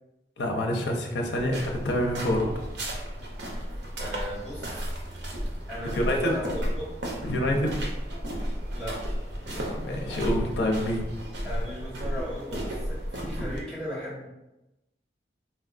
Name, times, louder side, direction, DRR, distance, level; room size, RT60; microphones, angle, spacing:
voice 1, 0.4-2.5 6.1-6.4 7.2-7.8 9.5-11.1, left 1 dB, 80° left, 0 dB, 0.6 m, -27 dB
sound 1, 1.3-13.6, equal, 90° right, 0.7 m, -33 dB
voice 2, 4.0-4.9 5.7-6.9 8.7-9.0 11.4-14.3, equal, 5° left, -11 dB, 1.3 m, -37 dB
4.1 x 2.3 x 2.5 m, 0.98 s
head